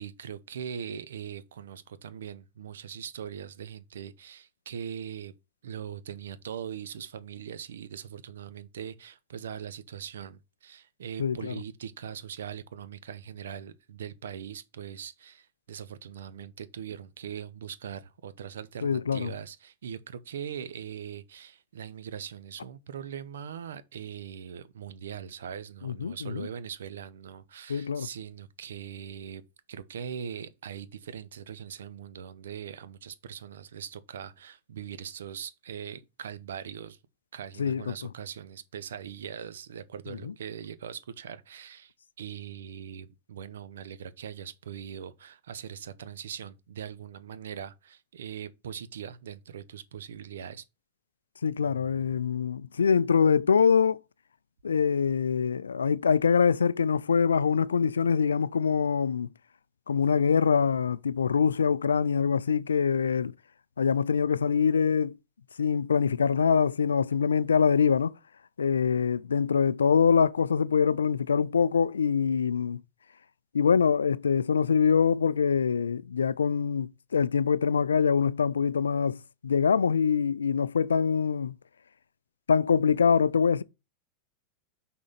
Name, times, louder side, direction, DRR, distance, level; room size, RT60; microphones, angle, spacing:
voice 1, 0.0-5.3 5.6-29.4 29.7-37.0 37.3-50.6 51.6-52.2, right 8 dB, 65° right, 0.7 m, -41 dB
voice 2, 11.2-11.5 18.8-19.3 25.8-26.5 27.7-28.1 37.6-37.9 40.2-40.3 51.4-54.0 54.6-59.3 59.9-63.3 63.8-65.2 65.6-68.1 68.6-72.8 73.5-81.6 82.5-83.6, left 6 dB, 70° left, 0.3 m, -24 dB
6.1 x 3.8 x 5.7 m
figure-of-eight pair, 90°, 0 cm